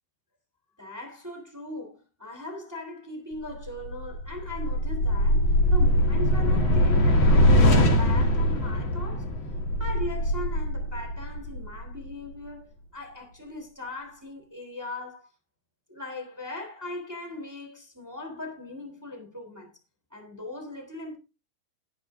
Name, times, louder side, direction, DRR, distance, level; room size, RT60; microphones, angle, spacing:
voice 1, 0.8-9.3 9.8-15.3 15.9-19.7 20.1-21.2, left 2 dB, 5° right, 2.2 m, -39 dB
sound 1, 3.6-12.1, equal, 50° left, 1.5 m, -22 dB
19.0 x 7.9 x 2.6 m
omnidirectional pair, 4.9 m